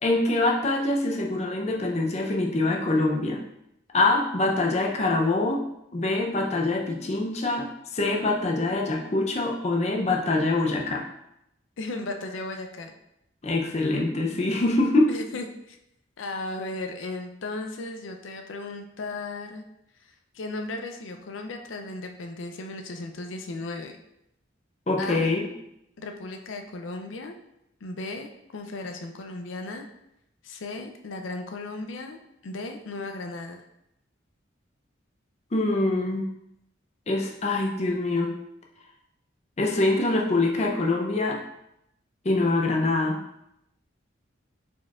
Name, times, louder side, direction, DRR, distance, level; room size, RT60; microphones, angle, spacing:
voice 1, 0.0-3.4 3.9-5.6 5.9-11.0 13.4-15.1 24.9-25.5 35.5-36.3 37.1-38.3 39.6-41.4 42.2-43.2, left 2 dB, 35° left, 0 dB, 0.5 m, -24 dB
voice 2, 11.8-12.9 15.1-15.8 16.2-19.6 20.3-23.9 25.0-25.3 26.0-27.3 27.8-29.9 30.4-33.6, left 2 dB, 90° left, 5 dB, 0.5 m, -36 dB
4.5 x 4.3 x 2.4 m, 0.80 s
head